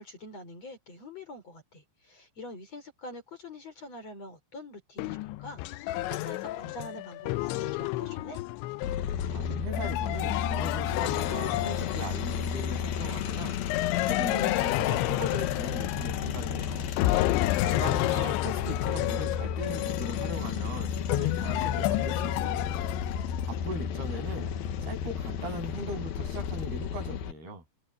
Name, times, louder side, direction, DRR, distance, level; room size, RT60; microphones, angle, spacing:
voice 1, 0.0-8.4 17.5-18.0, left 2 dB, 35° left, 5.5 m, -45 dB
sound 1, 5.0-12.4 13.7-16.6 17.0-23.4, left 17 dB, 85° left, 3.1 m, -31 dB
sound 2, 8.8-27.3, left 8 dB, 65° left, 2.9 m, -33 dB
voice 2, 9.3-13.6 14.1-16.9 17.6-22.6 23.4-24.5 24.8-27.6, right 1 dB, 60° right, 9.8 m, -39 dB
omnidirectional pair, 5.2 m